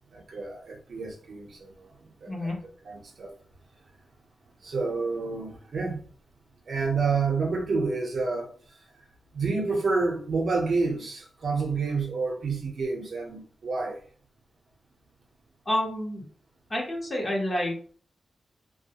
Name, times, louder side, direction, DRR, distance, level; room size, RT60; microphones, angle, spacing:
voice 1, 0.1-1.7 2.2-2.5 2.8-3.3 4.6-6.0 6.7-8.5 9.0-9.1 9.3-14.0, right 4 dB, 60° right, 0.6 m, -29 dB
voice 2, 15.7-16.2 16.7-17.7, left 1 dB, 30° left, 0.9 m, -28 dB
2.2 x 2.1 x 2.8 m
wide cardioid pair, 135°, 0 cm